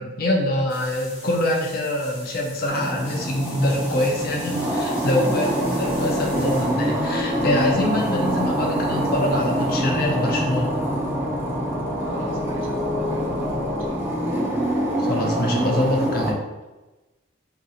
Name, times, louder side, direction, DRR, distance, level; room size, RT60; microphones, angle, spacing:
voice 1, 0.0-10.7 15.0-16.4, left 1 dB, 45° left, -1 dB, 0.5 m, -24 dB
sound 1, 0.7-9.7, left 2 dB, 60° left, 0.9 m, -43 dB
sound 2, 2.7-16.3, right 1 dB, 10° right, 0.4 m, -25 dB
sound 3, 5.8-13.9, left 2 dB, 40° right, 1.2 m, -30 dB
voice 2, 8.6-8.9 12.0-14.0, right 1 dB, 65° right, -1 dB, 0.5 m, -40 dB
2.7 x 2.6 x 2.4 m, 1.1 s
head